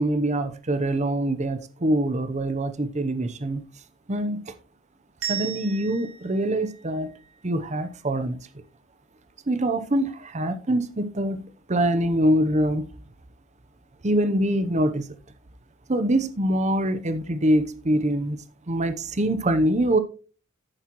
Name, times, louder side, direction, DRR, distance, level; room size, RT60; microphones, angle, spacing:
voice 1, 0.0-3.6 4.1-4.4 5.2-7.1 7.4-8.4 9.5-12.8 14.0-15.1 15.9-18.4 18.7-20.0, right 1 dB, 35° right, 0.8 m, -24 dB
sound 1, 5.2-8.0, right 11 dB, 75° right, 3.8 m, -37 dB
10.5 x 9.0 x 3.1 m
head